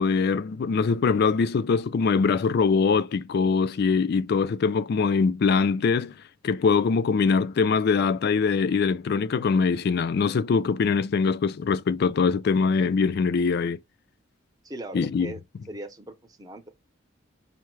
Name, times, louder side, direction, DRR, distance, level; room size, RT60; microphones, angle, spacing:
voice 1, 0.0-6.1 6.4-13.8 14.9-15.3, left 5 dB, 50° left, 0.3 m, -23 dB
voice 2, 14.6-15.4 15.7-16.7, right 1 dB, 20° right, 0.7 m, -39 dB
5.6 x 2.1 x 4.6 m
head